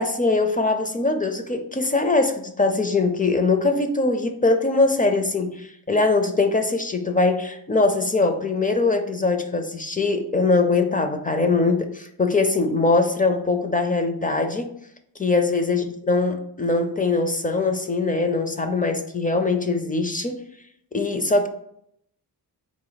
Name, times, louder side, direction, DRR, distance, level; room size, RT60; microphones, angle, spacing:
voice 1, 0.0-14.7 15.2-20.4 20.9-21.5, left 3 dB, 20° left, 7 dB, 0.4 m, -22 dB
4.2 x 2.6 x 3.9 m, 0.72 s
wide cardioid pair, 100°, 42 cm